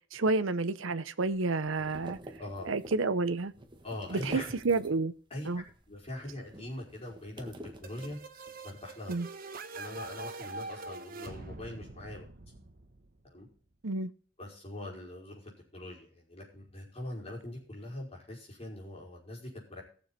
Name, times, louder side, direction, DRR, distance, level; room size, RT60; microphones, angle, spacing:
voice 1, 0.1-2.2 2.6-3.5 4.1-5.1 5.5-5.6 9.1-9.3 13.8-14.1, right 3 dB, 90° right, 0.8 m, -30 dB
sound 1, 1.3-5.2 5.5-8.6, right 1 dB, 25° right, 1.6 m, -48 dB
voice 2, 3.8-4.5 5.3-7.6 7.8-8.2 8.6-9.2 9.7-12.3 13.2-13.5 14.4-19.8, left 1 dB, 30° left, 5.3 m, -42 dB
sound 2, 7.8-13.5, right 3 dB, 50° right, 1.2 m, -44 dB
18.0 x 7.1 x 4.3 m
head